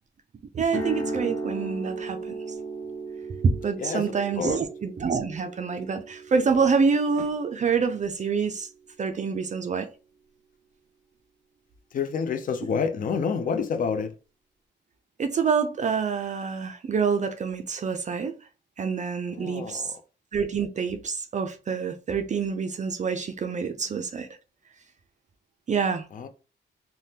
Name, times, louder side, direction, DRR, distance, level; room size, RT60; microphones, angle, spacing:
voice 1, 0.5-2.3 3.4-8.7 9.0-9.9 15.2-18.3 18.8-19.9 20.3-24.3 25.7-26.1, right 5 dB, 40° right, 0.4 m, -26 dB
sound 1, 0.7-8.7, right 2 dB, 10° left, 0.9 m, -36 dB
voice 2, 11.9-14.1 19.3-19.9 26.1-26.3, left 6 dB, 45° left, 0.4 m, -28 dB
3.3 x 2.1 x 2.7 m
cardioid pair, 115°, 19 cm